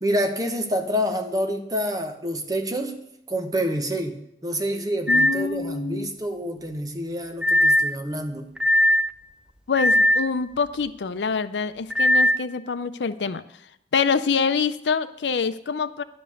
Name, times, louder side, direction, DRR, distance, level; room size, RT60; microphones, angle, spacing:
voice 1, 0.0-3.0 3.3-8.5, equal, 20° right, 4 dB, 1.0 m, -27 dB
voice 2, 5.1-6.1 9.7-13.4 13.9-16.0, left 5 dB, 80° left, 13 dB, 0.6 m, -25 dB
sound 1, 5.1-5.4 7.4-7.9 8.6-9.1 9.7-10.3 11.9-12.4, left 1 dB, 5° right, 0.4 m, -19 dB
11.0 x 5.3 x 7.0 m, 0.76 s
head